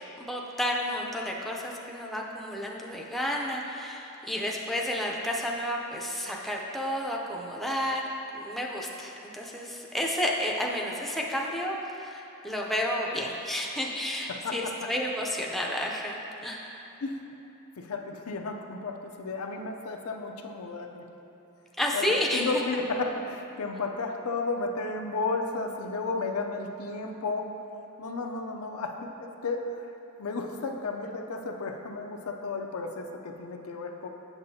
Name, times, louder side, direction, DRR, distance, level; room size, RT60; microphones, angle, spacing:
voice 1, 0.0-8.0 8.3-16.8 21.8-22.6, equal, ahead, -2 dB, 0.5 m, -31 dB
voice 2, 14.3-14.9 17.0-17.2 17.8-21.1 21.9-27.5 28.0-29.9 30.2-34.1, left 3 dB, 85° left, 3 dB, 0.5 m, -33 dB
8.1 x 6.7 x 2.7 m, 2.9 s
head